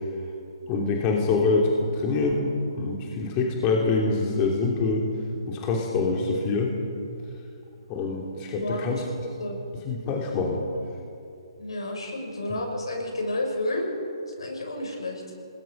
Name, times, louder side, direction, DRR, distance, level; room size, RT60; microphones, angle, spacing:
voice 1, 0.7-5.1 5.5-6.8 7.9-9.0 9.8-10.7, left 3 dB, 30° left, 0 dB, 2.9 m, -25 dB
voice 2, 8.6-8.9 9.4-9.6 11.6-13.9 14.3-15.2, left 1 dB, 80° left, 1 dB, 6.2 m, -30 dB
27.5 x 20.5 x 5.4 m, 2.5 s
hypercardioid pair, 140°, 3 cm